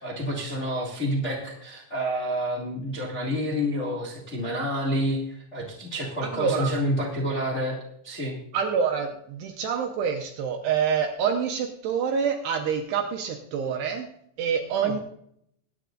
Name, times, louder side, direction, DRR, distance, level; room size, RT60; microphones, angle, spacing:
voice 1, 0.0-8.3 14.8-15.0, equal, 60° left, -3 dB, 0.7 m, -29 dB
voice 2, 6.2-6.7 8.5-14.1 14.4-15.0, right 7 dB, 75° right, 3 dB, 2.6 m, -26 dB
23.0 x 9.5 x 2.6 m, 0.71 s
omnidirectional pair, 5.6 m